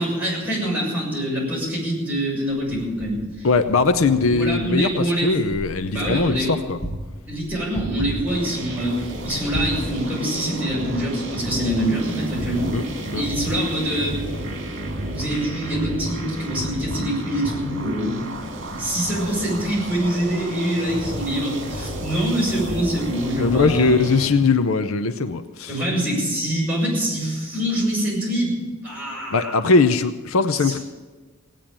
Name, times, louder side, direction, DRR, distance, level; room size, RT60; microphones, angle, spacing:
voice 1, 0.0-3.5 4.3-5.4 5.8-6.5 7.3-12.7 13.1-14.2 15.1-18.2 18.7-24.0 25.7-28.6 28.8-29.5 30.6-30.8, right 1 dB, 10° right, -6 dB, 6.6 m, -25 dB
Wind, 2.5-11.4, equal, 35° left, 4.4 m, -36 dB
voice 2, 3.4-6.8 12.7-12.8 13.1-13.2 23.4-25.8 29.3-30.8, left 4 dB, 70° left, 11 dB, 0.7 m, -20 dB
sound 1, 8.3-24.3, right 1 dB, 55° right, 2.1 m, -31 dB
17.5 x 9.2 x 8.7 m, 1.3 s
head